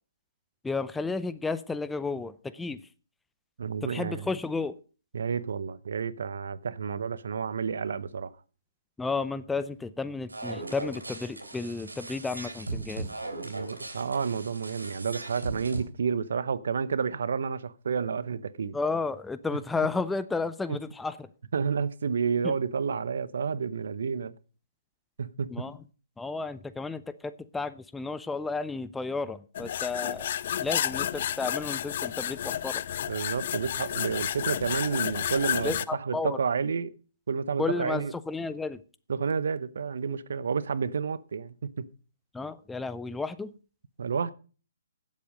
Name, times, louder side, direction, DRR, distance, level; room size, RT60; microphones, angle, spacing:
voice 1, 0.6-2.8 3.8-4.8 9.0-13.1 18.7-21.3 22.4-22.5 25.5-25.8 26.2-30.3 30.6-32.8 35.6-36.4 37.6-38.8 42.3-43.5, left 4 dB, 5° left, 0.6 m, -32 dB
voice 2, 3.6-4.2 5.1-8.3 13.4-18.7 20.7-20.8 21.5-24.3 25.2-25.7 33.1-36.9 37.3-38.1 39.1-41.9 44.0-44.3, right 6 dB, 65° right, 0.9 m, -30 dB
sound 1, 10.3-15.8, right 3 dB, 85° right, 3.6 m, -38 dB
sound 2, 29.5-35.8, left 10 dB, 50° left, 0.5 m, -31 dB
16.5 x 7.5 x 5.2 m
figure-of-eight pair, 130°, 0 cm